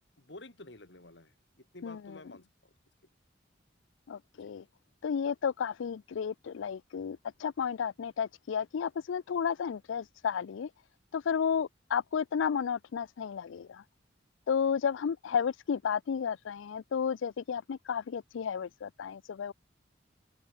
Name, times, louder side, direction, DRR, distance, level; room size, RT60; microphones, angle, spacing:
voice 1, 0.2-2.7 4.3-4.5 11.5-11.6, left 2 dB, 65° left, 3.0 m, -51 dB
voice 2, 1.8-2.2 4.1-4.6 5.0-10.7 11.1-13.8 14.5-19.5, left 7 dB, 80° left, 0.4 m, -32 dB
open air
head